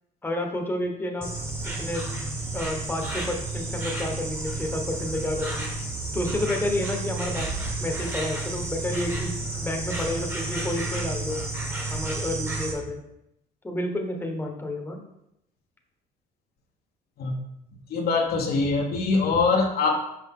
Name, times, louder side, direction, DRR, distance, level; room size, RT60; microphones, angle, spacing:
voice 1, 0.2-1.3 1.6-2.0 2.5-5.7 6.1-7.5 7.8-9.3 9.6-11.4 11.9-13.0 13.6-15.0, left 1 dB, 10° left, 2 dB, 1.1 m, -30 dB
Insect, 1.2-12.7, right 2 dB, 15° right, 1.3 m, -31 dB
voice 2, 17.9-20.0, left 4 dB, 65° left, 2 dB, 1.0 m, -23 dB
5.9 x 5.3 x 3.6 m, 0.82 s
cardioid pair, 110°, 17 cm